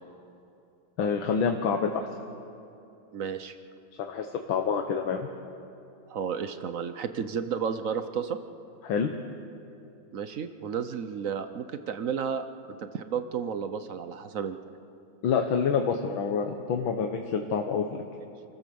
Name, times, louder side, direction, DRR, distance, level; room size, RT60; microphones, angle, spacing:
voice 1, 1.0-2.1 4.0-5.3 8.8-9.1 15.2-17.9, left 6 dB, 75° left, 4 dB, 1.9 m, -27 dB
voice 2, 3.1-3.6 6.1-8.4 10.1-12.4 12.8-14.6, right 7 dB, 55° right, 10 dB, 0.9 m, -32 dB
28.5 x 14.5 x 7.0 m, 2.8 s
omnidirectional pair, 2.2 m